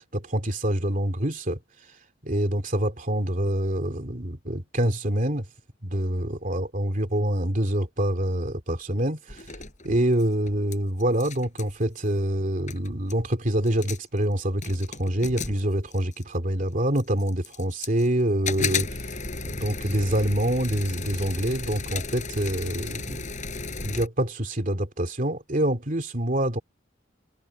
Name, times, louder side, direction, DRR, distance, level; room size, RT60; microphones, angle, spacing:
voice 1, 0.0-1.6 2.2-5.4 5.8-9.5 9.8-18.9 19.4-23.2 23.8-26.6, right 1 dB, 45° right, 2.8 m, -26 dB
sound 1, 9.3-10.8 11.0-11.8 12.4-12.5 12.7-13.2 13.7-14.2 14.6-16.4 17.0-18.1 18.5-24.1, left 4 dB, 40° left, 7.4 m, -34 dB
head